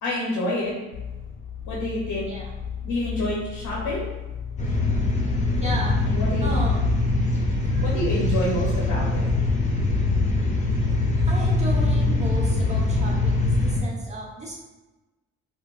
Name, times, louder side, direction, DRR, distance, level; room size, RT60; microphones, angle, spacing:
voice 1, 0.0-0.7 1.7-2.3 2.8-4.1 6.0-6.6 7.8-9.3, left 1 dB, 85° left, -5 dB, 0.9 m, -28 dB
sound 1, 0.9-13.7, left 7 dB, 45° left, 0.4 m, -36 dB
sound 2, 4.6-13.8, left 2 dB, 25° left, 0.8 m, -23 dB
voice 2, 5.6-6.0 6.4-6.8 7.6-7.9 11.2-14.6, right 1 dB, 20° right, -4 dB, 1.0 m, -34 dB
3.8 x 2.1 x 2.4 m, 1.1 s
cardioid pair, 90°, 30 cm